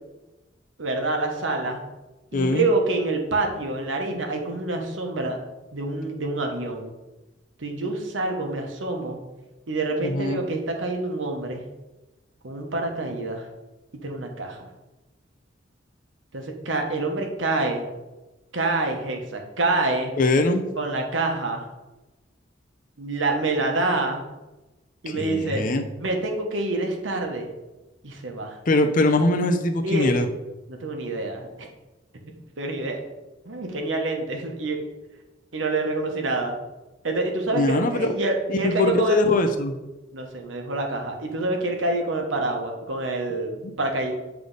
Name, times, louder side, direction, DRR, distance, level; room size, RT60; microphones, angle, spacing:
voice 1, 0.8-1.8 2.3-5.4 5.7-6.9 7.6-9.2 9.7-11.6 12.4-13.5 14.0-14.7 16.3-17.9 18.5-20.1 20.8-21.7 23.0-24.2 25.0-25.7 26.0-27.5 28.0-28.6 29.8-30.1 30.7-31.7 32.6-33.0 33.4-34.8 35.5-36.5 37.0-39.2 40.1-44.1, right 2 dB, 85° right, 3 dB, 1.0 m, -27 dB
voice 2, 2.3-2.7 10.0-10.4 20.2-20.6 25.1-25.8 28.7-30.3 37.5-38.1 38.5-39.8 43.6-43.7, left 2 dB, 45° left, 6 dB, 0.6 m, -22 dB
7.8 x 3.4 x 3.9 m, 1.1 s
head